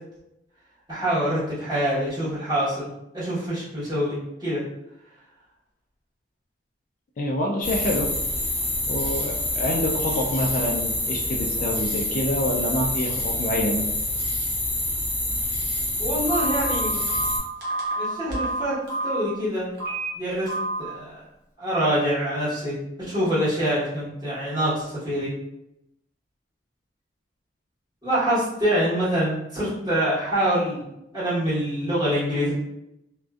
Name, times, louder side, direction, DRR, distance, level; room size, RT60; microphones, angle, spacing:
voice 1, 0.9-4.6 16.0-17.0 18.0-19.7 20.1-20.5 20.8-21.2 21.6-25.3 28.0-30.8 31.1-32.5, equal, 20° right, -10 dB, 1.1 m, -25 dB
voice 2, 7.2-8.1 8.9-13.8, left 1 dB, 45° left, 0 dB, 0.3 m, -26 dB
sound 1, 7.6-17.4, left 1 dB, 10° left, 0.6 m, -27 dB
Telephone, 16.3-19.2 19.8-20.1 20.5-20.8, right 1 dB, 60° right, 0.8 m, -28 dB
2.5 x 2.1 x 2.3 m, 0.86 s
head